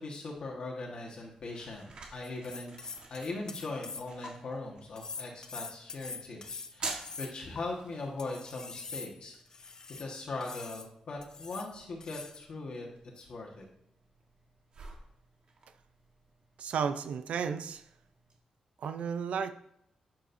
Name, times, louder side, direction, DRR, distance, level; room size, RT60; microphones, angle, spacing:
voice 1, 0.0-2.7 3.1-12.9 13.1-13.6, left 2 dB, 50° left, -1 dB, 1.5 m, -40 dB
sound 1, 0.8-18.4, right 3 dB, 50° right, 1.4 m, -50 dB
sound 2, 2.2-4.3 5.0-7.6 8.2-10.1 10.4-10.9 11.2-11.7 12.0-12.5, left 4 dB, 30° left, 0.5 m, -44 dB
voice 2, 16.6-17.8 18.8-19.5, right 6 dB, 85° right, 10 dB, 0.5 m, -33 dB
11.0 x 7.5 x 2.7 m, 0.75 s
wide cardioid pair, 175°, 2 cm